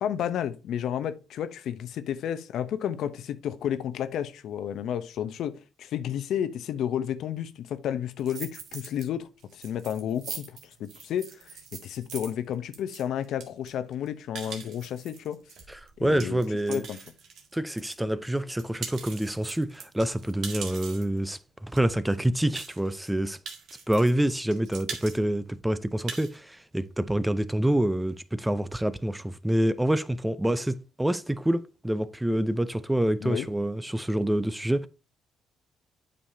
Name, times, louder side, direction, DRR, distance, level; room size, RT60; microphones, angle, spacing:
voice 1, 0.0-11.5 11.8-15.4 16.0-16.4 16.7-17.0 33.2-33.5, left 9 dB, 75° left, 0.7 m, -31 dB
sound 1, 8.2-9.1 9.4-18.0 18.4-21.2 21.8-21.9 22.1-22.2 22.6-23.1 23.5-24.3 24.5-25.2 25.5-25.6 25.9-26.4, right 6 dB, 70° right, 1.6 m, -41 dB
voice 2, 16.0-16.8 17.5-23.4 23.9-34.9, right 1 dB, 10° right, 0.5 m, -27 dB
8.6 x 5.4 x 2.7 m
cardioid pair, 90°, 0 cm